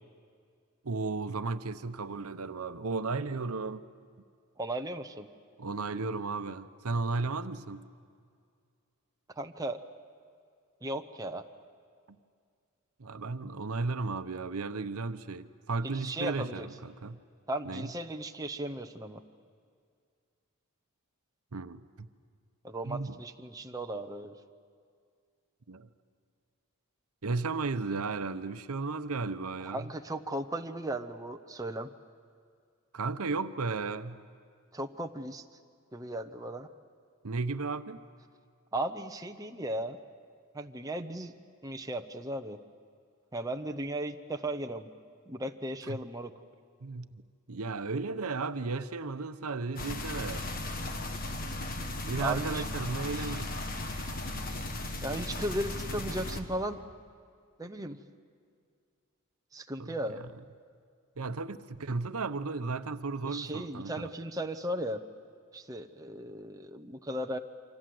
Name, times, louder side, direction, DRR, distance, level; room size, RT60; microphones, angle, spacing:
voice 1, 0.8-3.9 5.6-7.9 13.0-17.2 17.6-17.9 21.5-22.1 22.8-23.2 25.7-25.9 27.2-29.9 32.9-34.2 37.2-38.0 45.9-46.0 46.8-47.2 47.5-50.5 52.0-53.5 59.8-60.3 61.2-64.1, right 3 dB, 80° right, 0.9 m, -34 dB
voice 2, 4.6-5.3 9.4-9.8 10.8-11.4 15.8-16.7 17.5-19.2 22.6-24.3 29.6-31.9 34.7-35.4 35.9-36.7 38.7-40.0 40.5-41.3 41.6-42.6 43.3-44.9 45.3-46.3 52.2-52.6 53.1-53.4 53.9-54.0 55.0-56.8 57.6-58.0 59.5-60.2 63.2-65.0 65.5-67.4, right 1 dB, 15° right, 0.9 m, -36 dB
sound 1, 49.8-56.4, left 2 dB, 40° left, 1.7 m, -36 dB
28.0 x 25.0 x 7.8 m
head